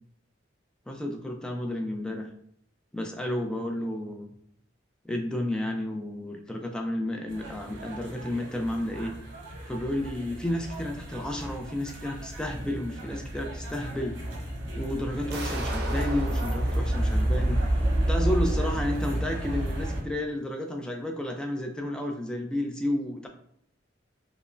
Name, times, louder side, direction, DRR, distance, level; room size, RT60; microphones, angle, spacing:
voice 1, 0.9-2.3 2.9-4.3 5.0-9.1 9.7-14.2 14.8-17.6 18.1-23.3, left 1 dB, 5° left, 2 dB, 0.4 m, -31 dB
sound 1, 7.3-20.0, right 1 dB, 80° right, 0.9 m, -30 dB
sound 2, 15.3-18.2, right 2 dB, 55° right, 0.6 m, -39 dB
5.2 x 2.0 x 2.5 m, 0.67 s
head